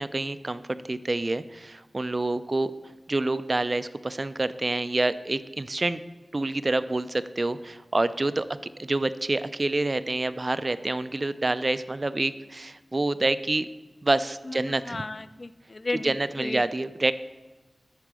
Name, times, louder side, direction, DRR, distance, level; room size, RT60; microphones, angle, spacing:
voice 1, 0.0-2.7 3.1-6.0 6.3-8.5 8.8-13.7 14.0-15.0 16.0-17.1, right 2 dB, 45° right, 14 dB, 0.4 m, -27 dB
voice 2, 14.4-16.6, left 2 dB, 55° left, 13 dB, 0.4 m, -34 dB
8.3 x 4.9 x 6.2 m, 1.2 s
cardioid pair, 45°, 0 cm